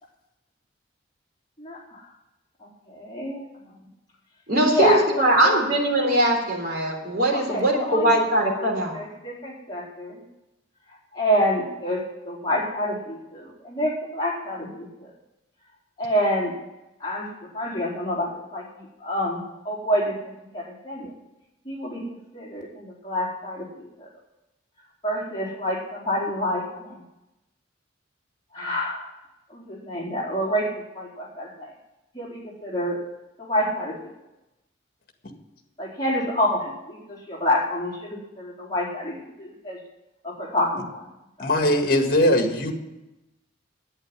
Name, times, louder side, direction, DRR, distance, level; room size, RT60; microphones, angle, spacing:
voice 1, 1.6-2.0 2.6-3.4 4.6-5.6 7.3-8.2 8.5-10.2 11.1-15.1 16.0-16.6 17.0-17.3 17.5-20.1 20.5-21.1 21.6-22.0 22.3-24.1 25.0-27.0 28.5-29.0 29.5-31.7 32.1-33.0 33.4-34.1 35.8-39.8 40.2-41.1, equal, 20° left, -5 dB, 4.2 m, -27 dB
voice 2, 4.5-9.0, right 1 dB, 50° right, 0 dB, 3.9 m, -21 dB
voice 3, 41.4-42.7, left 1 dB, 50° left, 4 dB, 2.0 m, -20 dB
11.0 x 9.5 x 9.7 m, 0.96 s
head